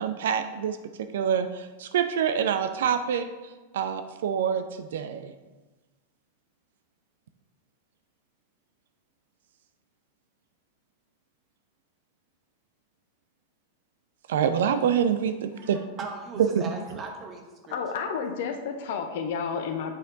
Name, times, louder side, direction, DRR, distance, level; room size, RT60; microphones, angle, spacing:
voice 1, 0.0-3.3 3.7-5.3 14.3-15.8 16.4-16.6, right 8 dB, 60° right, 9 dB, 0.4 m, -26 dB
voice 2, 15.6-17.8, right 4 dB, 25° right, 2 dB, 1.2 m, -39 dB
voice 3, 17.7-19.9, left 6 dB, 55° left, 6 dB, 0.7 m, -31 dB
8.0 x 4.2 x 3.9 m, 1.2 s
figure-of-eight pair, 90°, 0 cm